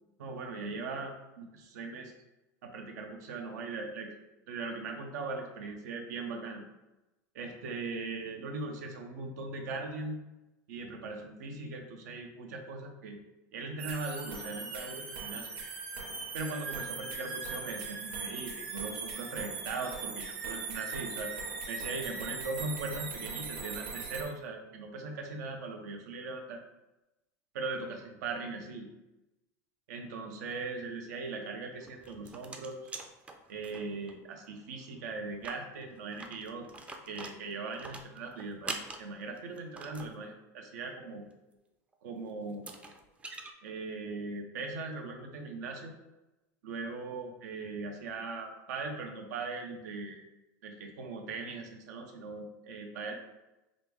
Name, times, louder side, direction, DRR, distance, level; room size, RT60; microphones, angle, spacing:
voice 1, 0.2-2.1 2.6-4.1 4.5-6.6 7.3-10.2 10.7-13.2 13.5-15.5 16.3-21.3 21.7-26.6 27.5-28.9 29.9-32.9 33.5-36.7 37.0-41.3 42.0-42.8 43.6-45.9 46.6-50.2 50.6-53.1, right 3 dB, 85° right, 3 dB, 0.8 m, -39 dB
sound 1, 13.8-24.2, right 4 dB, 65° right, 1.3 m, -40 dB
sound 2, 31.8-34.1 34.4-34.5 34.8-34.9 35.3-40.1 41.9-42.0 42.5-43.5, right 3 dB, 15° right, 0.4 m, -44 dB
5.2 x 2.0 x 3.4 m, 0.98 s
supercardioid pair, 130°, 9 cm